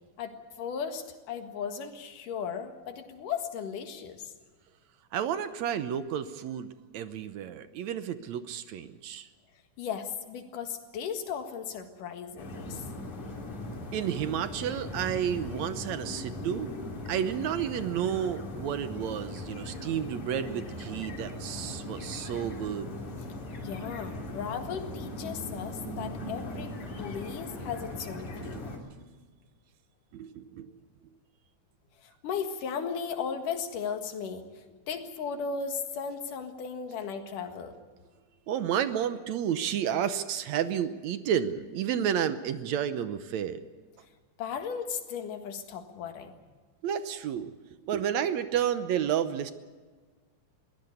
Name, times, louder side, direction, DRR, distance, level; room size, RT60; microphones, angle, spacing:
voice 1, 0.2-4.3 9.8-12.9 23.6-28.7 32.0-37.8 44.4-46.4, left 6 dB, 90° left, 6 dB, 3.4 m, -36 dB
voice 2, 5.1-6.7 6.9-9.3 13.9-16.7 17.1-22.9 28.4-28.6 30.1-30.7 38.5-43.6 46.8-47.5 47.8-49.5, right 9 dB, 70° right, 11 dB, 2.0 m, -31 dB
sound 1, 12.4-28.8, left 1 dB, 65° left, 4.6 m, -39 dB
23.0 x 16.5 x 8.2 m, 1.4 s
omnidirectional pair, 3.6 m